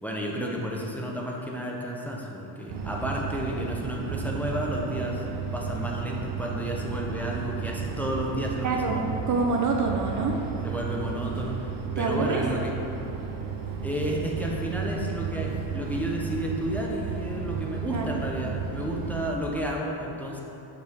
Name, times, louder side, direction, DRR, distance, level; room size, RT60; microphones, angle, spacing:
voice 1, 0.0-5.2 5.5-9.0 10.6-12.7 13.8-20.4, equal, 5° left, -2 dB, 0.9 m, -32 dB
sound 1, 2.7-19.3, right 6 dB, 85° right, 1.0 m, -33 dB
voice 2, 8.6-10.3 12.0-12.4 17.8-18.2, right 3 dB, 40° right, 1 dB, 0.7 m, -27 dB
6.7 x 6.6 x 3.6 m, 2.9 s
cardioid pair, 90°, 47 cm